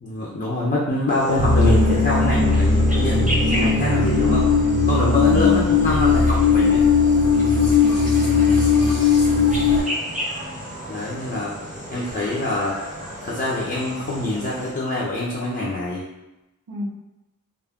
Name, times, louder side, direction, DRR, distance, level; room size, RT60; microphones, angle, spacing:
voice 1, 0.0-4.5 4.8-6.9 10.9-11.5 11.9-12.8 13.2-16.1, left 2 dB, 35° left, -6 dB, 0.5 m, -25 dB
sound 1, 1.1-14.7, right 1 dB, 25° right, 0.7 m, -33 dB
sound 2, 1.3-9.8, left 4 dB, 90° left, 0.9 m, -18 dB
voice 2, 3.4-3.9 5.1-5.7 7.8-8.6 16.7-16.9, left 2 dB, 90° right, -1 dB, 0.6 m, -31 dB
2.3 x 2.2 x 3.5 m, 0.95 s
wide cardioid pair, 60°, 33 cm